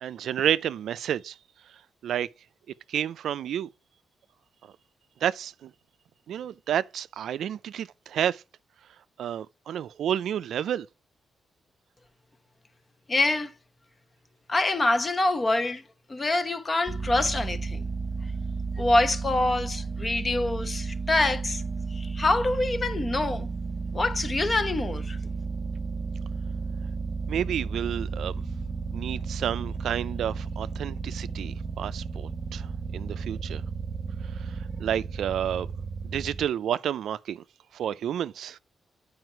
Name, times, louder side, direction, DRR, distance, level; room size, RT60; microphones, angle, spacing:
voice 1, 0.0-1.4 2.0-2.3 2.9-3.7 5.2-5.7 6.3-8.4 9.2-10.9 27.3-28.3 28.9-32.7 32.9-33.6 34.4-34.5 34.8-35.7 36.0-37.4 37.7-38.6, right 10 dB, 80° right, 0.3 m, -30 dB
voice 2, 13.1-13.5 14.5-15.8 16.1-17.9 18.8-21.6 21.9-23.5 23.9-25.2, left 2 dB, 35° left, 0.9 m, -25 dB
sound 1, 16.9-36.5, right 4 dB, 40° right, 0.6 m, -33 dB
7.9 x 5.0 x 4.5 m
cardioid pair, 70°, 0 cm